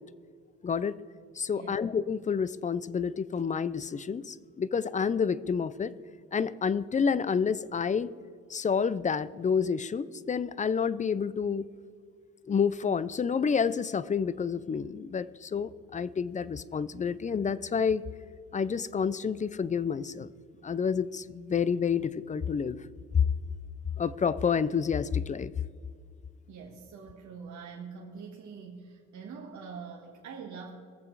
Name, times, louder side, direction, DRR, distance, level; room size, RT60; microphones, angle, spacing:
voice 1, 0.6-1.0 1.4-5.9 6.3-8.1 8.5-11.7 12.5-18.0 18.5-20.3 20.6-22.8 24.0-25.5, left 6 dB, 25° left, 17 dB, 0.4 m, -29 dB
voice 2, 1.5-1.8 26.5-30.7, right 5 dB, 70° right, -1 dB, 1.7 m, -44 dB
21.0 x 7.3 x 4.7 m, 2.1 s
cardioid pair, 90°, 30 cm